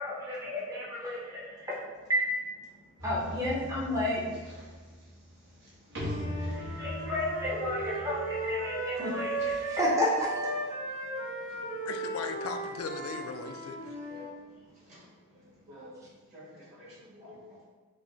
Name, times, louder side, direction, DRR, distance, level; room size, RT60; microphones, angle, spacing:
voice 1, 0.0-1.8 2.1-2.2 3.0-4.2 6.2-10.3, left 1 dB, 15° right, -7 dB, 0.7 m, -31 dB
sound 1, 3.0-10.0, equal, 50° right, 1.1 m, -41 dB
voice 2, 5.2-6.9 11.0-11.8 13.8-17.6, left 1 dB, 35° right, -9 dB, 1.5 m, -54 dB
Wind instrument woodwind instrument, 5.9-14.3, right 2 dB, 85° right, 1.0 m, -36 dB
voice 3, 11.9-14.0, left 4 dB, 85° left, 6 dB, 0.4 m, -38 dB
4.8 x 2.1 x 2.7 m, 1.4 s
head